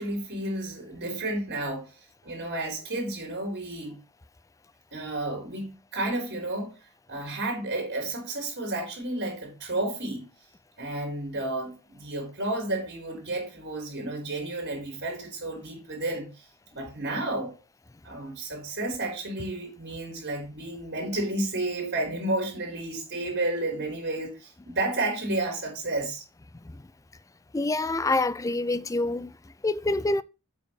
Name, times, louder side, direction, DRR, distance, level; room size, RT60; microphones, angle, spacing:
voice 1, 0.0-2.0 2.2-4.0 4.9-6.8 7.1-10.3 10.8-16.5 16.7-17.6 18.0-26.2, right 2 dB, 55° right, 4.2 m, -31 dB
voice 2, 27.5-29.3 29.6-30.2, left 2 dB, 15° left, 0.4 m, -26 dB
8.5 x 5.5 x 4.7 m
head